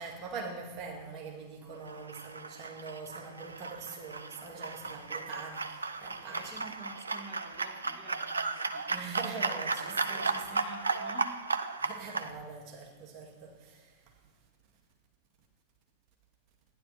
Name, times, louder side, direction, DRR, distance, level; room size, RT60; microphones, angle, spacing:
voice 1, 0.0-6.6 8.9-10.5 11.8-14.0, right 4 dB, 40° right, 2.3 m, -43 dB
sound 1, 1.8-12.3, right 4 dB, 80° right, 0.6 m, -35 dB
voice 2, 6.1-9.1 9.9-11.4, right 1 dB, ahead, 2.5 m, -50 dB
15.0 x 11.0 x 4.4 m
figure-of-eight pair, 90°, 0 cm